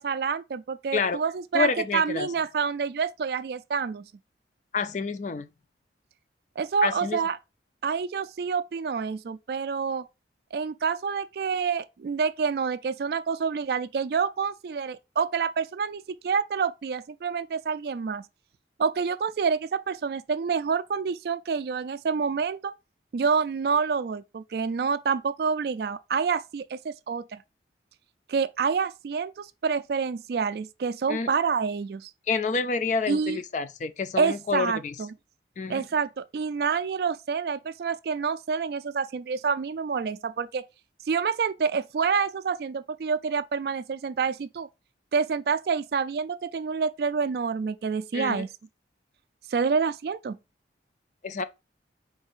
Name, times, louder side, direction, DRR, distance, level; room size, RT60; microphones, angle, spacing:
voice 1, 0.0-4.0 6.6-7.4 7.8-10.0 10.5-18.2 18.8-22.7 23.1-27.4 28.3-32.1 33.1-33.4 34.2-35.1 35.7-40.6 41.1-44.7 45.1-48.5 49.5-50.4, right 5 dB, 55° right, 0.3 m, -27 dB
voice 2, 1.5-2.3 4.7-5.5 6.8-7.2 31.1-31.3 32.3-35.0 35.6-35.9 48.1-48.5 51.2-51.4, left 5 dB, 40° left, 0.4 m, -28 dB
5.4 x 4.0 x 2.5 m
head